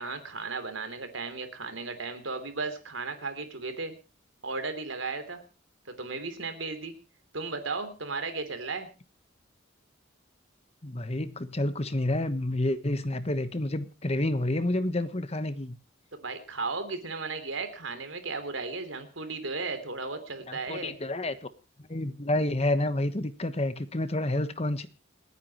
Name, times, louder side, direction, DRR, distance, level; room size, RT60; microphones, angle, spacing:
voice 1, 0.0-3.9 4.4-5.4 6.0-6.9 7.3-8.9 16.1-20.9, right 3 dB, 75° right, 3.3 m, -35 dB
voice 2, 10.8-15.8 20.5-21.3 21.9-24.9, left 1 dB, 30° left, 1.2 m, -29 dB
28.5 x 9.6 x 3.0 m
head